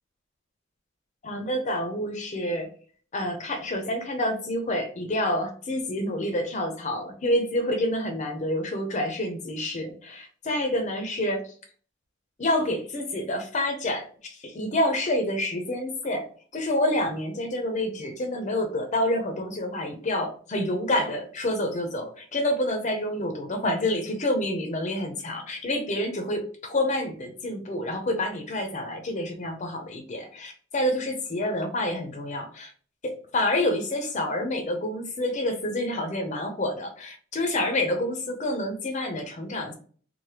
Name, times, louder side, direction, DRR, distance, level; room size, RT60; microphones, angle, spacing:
voice 1, 1.2-2.7 3.1-11.4 12.4-16.3 16.5-32.7 33.0-39.7, left 1 dB, 35° left, 5 dB, 0.5 m, -28 dB
3.2 x 2.0 x 2.8 m, 0.44 s
head